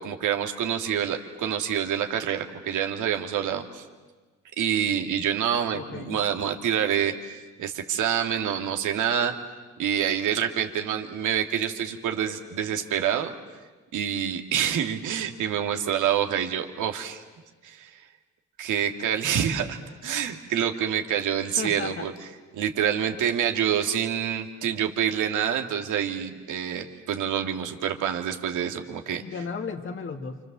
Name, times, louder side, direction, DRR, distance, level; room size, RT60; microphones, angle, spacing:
voice 1, 0.0-3.8 4.6-9.3 9.8-13.3 13.9-17.2 17.6-18.0 18.6-22.1 22.5-29.2, right 9 dB, 80° right, 5 dB, 2.3 m, -27 dB
voice 2, 5.7-6.2 21.6-22.1 29.2-30.4, left 5 dB, 40° left, 4 dB, 1.9 m, -34 dB
28.5 x 27.0 x 7.5 m, 1.3 s
cardioid pair, 90°, 30 cm